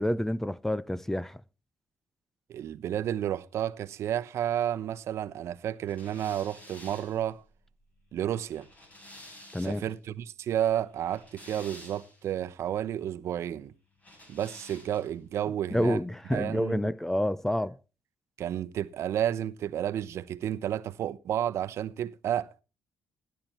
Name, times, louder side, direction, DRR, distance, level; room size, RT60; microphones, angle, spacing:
voice 1, 0.0-1.4 9.5-9.8 15.7-17.8, left 1 dB, 5° left, 0.6 m, -28 dB
voice 2, 2.5-7.4 8.1-8.7 9.6-13.7 14.3-16.0 16.3-16.8 18.4-22.5, right 10 dB, 70° right, 0.9 m, -31 dB
sound 1, 5.9-10.0 10.9-12.3 14.0-15.2, left 1 dB, 30° left, 5.7 m, -51 dB
15.0 x 10.5 x 4.5 m
cardioid pair, 85°, 5 cm